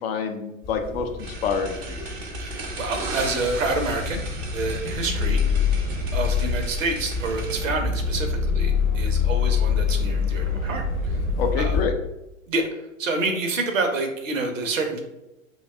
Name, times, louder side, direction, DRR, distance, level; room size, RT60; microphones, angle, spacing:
voice 1, 0.0-2.1 11.4-11.9, left 5 dB, 50° left, 5 dB, 0.5 m, -27 dB
sound 1, 0.6-11.8, left 5 dB, 20° left, 0.8 m, -26 dB
sound 2, 1.2-7.7, right 3 dB, 20° right, 0.4 m, -37 dB
voice 2, 2.4-4.2 4.5-5.4 6.1-11.2 11.5-11.8 12.5-15.0, right 3 dB, 70° right, 5 dB, 0.8 m, -28 dB
2.6 x 2.3 x 3.2 m, 0.92 s
figure-of-eight pair, 100°, 40 cm